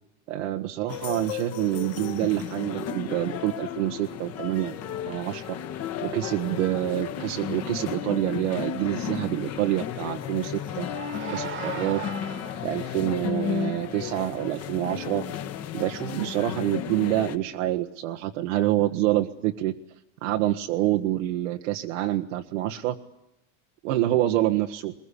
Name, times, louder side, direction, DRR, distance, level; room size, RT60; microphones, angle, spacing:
voice 1, 0.3-4.8 5.0-5.6 6.0-10.9 11.3-12.0 12.3-15.2 15.7-19.7 20.2-22.9 23.8-24.9, right 14 dB, 80° right, 4 dB, 1.4 m, -27 dB
sound 1, 0.9-17.4, left 9 dB, 45° left, 2.1 m, -34 dB
sound 2, 10.2-13.0, right 11 dB, 30° right, 1.6 m, -39 dB
22.0 x 21.5 x 10.0 m, 0.87 s
supercardioid pair, 140°, 37 cm